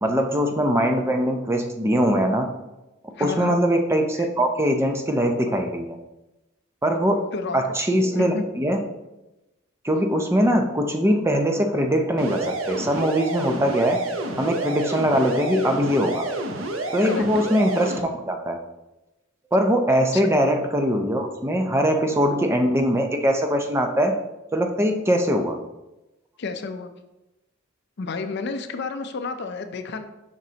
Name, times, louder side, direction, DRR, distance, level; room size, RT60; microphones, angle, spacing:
voice 1, 0.0-2.5 3.0-6.0 6.8-7.3 7.5-8.8 9.8-14.0 14.4-16.3 16.9-18.6 19.5-24.1 24.5-25.6, equal, 15° right, 4 dB, 0.5 m, -22 dB
voice 2, 3.2-3.6 4.2-4.3 7.3-7.6 8.0-8.4 17.0-17.2 20.1-20.3 26.4-26.9 28.0-30.1, left 4 dB, 55° left, 8 dB, 0.5 m, -31 dB
sound 1, 12.2-18.0, right 1 dB, 80° right, 0.8 m, -29 dB
7.4 x 5.0 x 2.8 m, 0.98 s
head